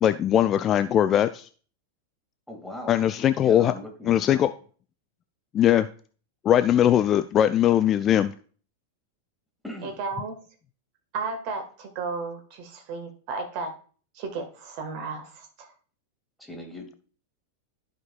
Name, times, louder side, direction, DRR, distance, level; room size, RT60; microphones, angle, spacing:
voice 1, 0.0-1.5 2.9-3.7 4.1-4.5 5.5-5.9 6.4-8.3, left 10 dB, 30° left, 11 dB, 0.3 m, -20 dB
voice 2, 2.5-3.0 3.4-4.4 9.6-10.0 16.4-16.9, left 1 dB, ahead, 1 dB, 2.0 m, -39 dB
voice 3, 9.8-10.3 11.1-13.7 14.1-15.7, right 4 dB, 45° right, 5 dB, 1.5 m, -34 dB
14.0 x 5.1 x 2.3 m, 0.42 s
figure-of-eight pair, 90°, 0 cm